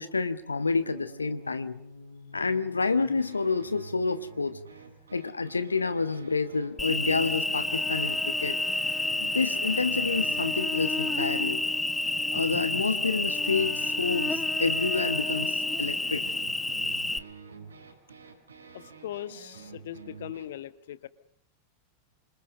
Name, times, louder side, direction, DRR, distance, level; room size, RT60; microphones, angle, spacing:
voice 1, 0.0-1.8 2.3-4.6 5.1-8.6 9.2-11.6 12.3-16.3, left 4 dB, 80° left, 13 dB, 1.4 m, -29 dB
sound 1, 0.6-20.5, right 4 dB, 75° right, 7.2 m, -48 dB
Cricket, 6.8-17.2, left 2 dB, 5° left, 1.4 m, -29 dB
voice 2, 18.7-21.1, left 11 dB, 60° left, 15 dB, 1.5 m, -40 dB
27.5 x 26.0 x 6.7 m, 0.65 s
figure-of-eight pair, 90°, 0 cm